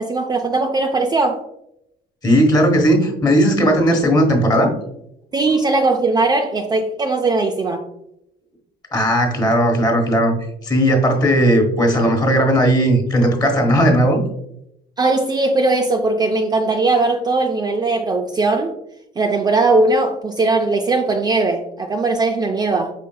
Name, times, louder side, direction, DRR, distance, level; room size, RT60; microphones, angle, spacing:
voice 1, 0.0-1.4 5.3-7.8 15.0-18.7 19.2-22.9, right 3 dB, 25° right, 3 dB, 0.4 m, -19 dB
voice 2, 2.2-4.7 8.9-10.3 10.6-14.2, equal, 25° left, 2 dB, 1.2 m, -16 dB
5.1 x 3.6 x 2.3 m, 0.79 s
cardioid pair, 110°, 17 cm